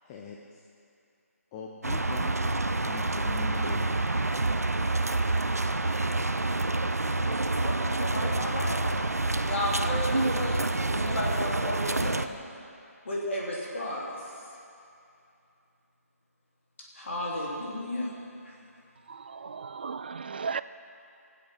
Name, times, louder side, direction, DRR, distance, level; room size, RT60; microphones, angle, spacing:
voice 1, 0.0-0.6 1.5-4.3, left 5 dB, 15° left, 0 dB, 0.6 m, -42 dB
sound 1, 1.8-12.3, right 2 dB, 75° right, 0.6 m, -28 dB
voice 2, 7.5-8.8 9.4-12.3 13.0-14.1 17.0-18.1, left 1 dB, 50° left, -5 dB, 3.1 m, -33 dB
voice 3, 19.1-20.6, right 5 dB, 40° right, 14 dB, 0.4 m, -35 dB
17.5 x 7.9 x 6.1 m, 2.6 s
figure-of-eight pair, 150°, 8 cm